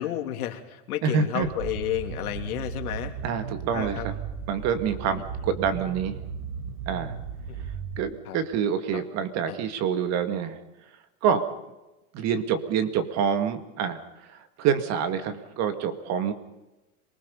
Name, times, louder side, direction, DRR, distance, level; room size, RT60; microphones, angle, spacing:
voice 1, 0.0-3.1 3.7-4.1 7.5-7.6 8.2-8.4 8.9-9.0 9.5-9.6, left 12 dB, 80° left, 4 dB, 3.1 m, -32 dB
voice 2, 1.0-1.5 3.2-4.1 4.5-6.2 6.9-7.1 8.0-10.6 11.2-11.4 12.1-14.0 14.6-16.3, right 7 dB, 35° right, 9 dB, 2.1 m, -26 dB
sound 1, 1.4-8.0, right 6 dB, 80° right, 4.2 m, -36 dB
27.0 x 20.0 x 5.5 m, 1.0 s
supercardioid pair, 145°, 43 cm